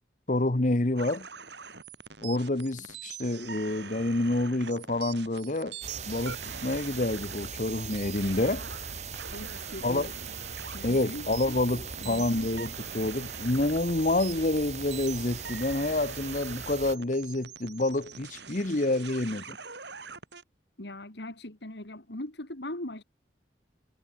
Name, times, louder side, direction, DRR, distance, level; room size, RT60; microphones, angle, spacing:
voice 1, 0.3-1.3 2.2-5.8 6.1-8.6 9.8-10.1 10.8-19.6, left 2 dB, 45° left, 1.1 m, -28 dB
sound 1, 1.0-20.4, right 6 dB, 70° right, 6.5 m, -44 dB
sound 2, 5.8-17.0, right 6 dB, 40° right, 4.9 m, -40 dB
voice 2, 9.3-10.1 10.7-11.3 12.0-12.5 20.8-23.0, left 1 dB, 70° left, 2.9 m, -40 dB
head